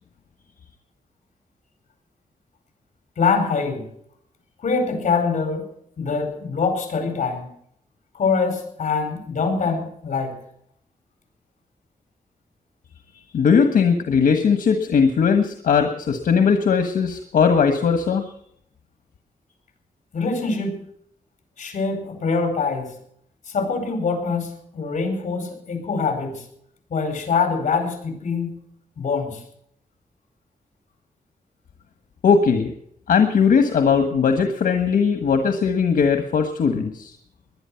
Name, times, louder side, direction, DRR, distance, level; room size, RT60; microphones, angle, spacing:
voice 1, 3.2-3.8 4.6-5.7 6.0-7.5 8.1-10.4 20.1-20.9 21.6-22.9 23.5-26.4 26.9-28.6 29.0-29.4, left 4 dB, 60° left, 5 dB, 5.1 m, -24 dB
voice 2, 13.3-18.2 32.2-32.7 33.1-37.1, left 6 dB, 80° left, 7 dB, 1.4 m, -19 dB
20.5 x 11.0 x 5.8 m, 0.69 s
wide cardioid pair, 180°, 14 cm